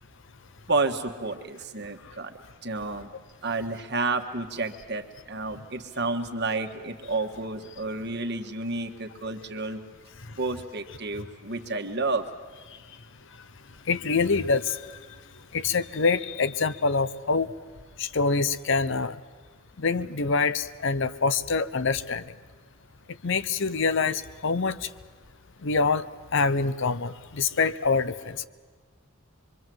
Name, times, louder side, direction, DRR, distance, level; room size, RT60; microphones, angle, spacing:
voice 1, 0.7-3.1 3.4-9.8 10.4-12.2, right 3 dB, 50° right, 6 dB, 1.6 m, -30 dB
voice 2, 13.9-14.8 15.5-17.5 18.0-19.2 19.8-22.2 23.2-24.9 25.6-26.0 26.3-28.4, left 4 dB, 60° left, 14 dB, 0.7 m, -25 dB
25.0 x 23.5 x 7.8 m, 1.4 s
head